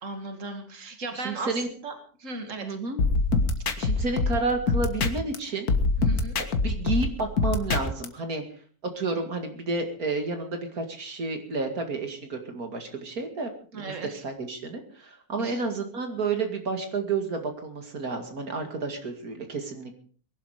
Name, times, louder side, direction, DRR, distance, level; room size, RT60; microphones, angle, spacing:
voice 1, 0.0-1.6 1.8-2.7 3.7-3.9 6.0-6.3 13.7-14.2 15.4-15.6, right 3 dB, 55° right, 6 dB, 2.6 m, -37 dB
voice 2, 1.1-1.7 2.6-3.0 3.8-5.7 6.6-8.6 8.9-14.0 14.2-19.9, right 3 dB, 75° right, 5 dB, 2.7 m, -31 dB
sound 1, 3.0-5.4 5.7-8.1, left 3 dB, 85° left, 2.1 m, -25 dB
22.0 x 12.0 x 5.0 m, 0.43 s
omnidirectional pair, 1.6 m